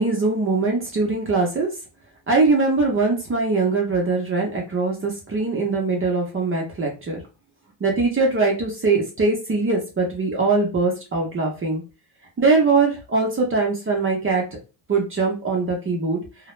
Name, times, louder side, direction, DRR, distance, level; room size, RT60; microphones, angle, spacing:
voice 1, 0.0-1.7 2.3-7.2 7.8-11.8 12.4-14.4 14.9-16.2, right 3 dB, 25° right, 0 dB, 0.6 m, -21 dB
2.2 x 2.0 x 3.0 m, 0.31 s
cardioid pair, 125°, 49 cm